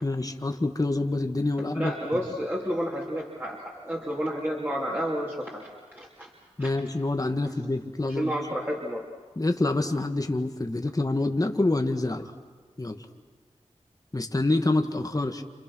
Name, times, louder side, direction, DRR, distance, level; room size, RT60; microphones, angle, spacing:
voice 1, 0.0-1.9 6.6-8.3 9.4-12.3 12.8-13.0 14.1-15.4, left 2 dB, 30° left, 5 dB, 1.7 m, -26 dB
voice 2, 1.7-6.3 6.6-6.7 8.0-9.0, equal, 15° right, -3 dB, 3.2 m, -31 dB
29.5 x 28.0 x 6.3 m, 1.4 s
wide cardioid pair, 65°, 12 cm